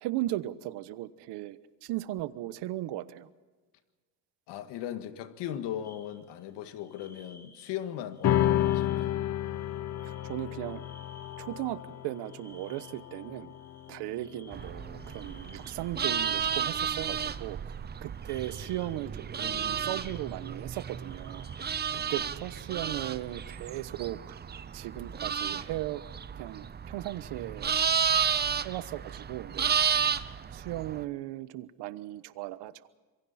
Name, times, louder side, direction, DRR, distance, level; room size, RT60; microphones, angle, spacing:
voice 1, 0.0-3.3 10.0-10.8 11.4-13.5 13.9-17.7 18.0-21.5 21.9-24.4 24.7-26.0 26.3-27.7 28.6-29.8 30.5-32.7, right 15 dB, 75° right, 1.2 m, -37 dB
voice 2, 4.5-9.2, left 10 dB, 75° left, 1.9 m, -38 dB
sound 1, 5.8-6.4 6.8-7.8 8.1-16.1 16.6-17.5 18.0-19.0 19.6-22.0, left 1 dB, 5° left, 3.3 m, -57 dB
sound 2, 8.2-15.0, left 12 dB, 40° left, 0.6 m, -31 dB
sound 3, 14.5-31.0, right 7 dB, 25° right, 0.7 m, -32 dB
26.5 x 23.5 x 4.3 m
cardioid pair, 120°, 42 cm